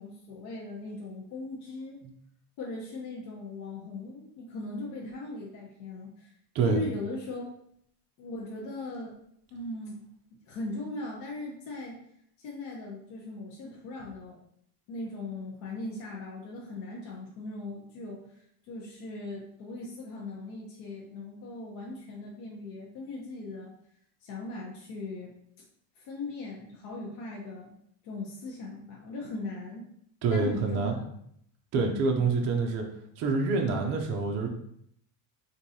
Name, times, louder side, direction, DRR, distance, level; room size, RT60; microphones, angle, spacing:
voice 1, 0.0-2.0 2.6-6.3 6.6-7.5 8.2-9.2 9.5-10.1 10.5-12.0 12.4-14.4 14.9-18.2 18.7-23.7 24.2-25.3 26.0-27.7 28.0-29.9 30.3-31.0 31.7-32.1, left 2 dB, 60° left, -3 dB, 0.9 m, -39 dB
voice 2, 30.2-31.0 31.7-32.9 33.2-34.5, right 4 dB, 35° right, 1 dB, 0.4 m, -26 dB
4.6 x 2.6 x 2.7 m, 0.70 s
cardioid pair, 175°, 45 cm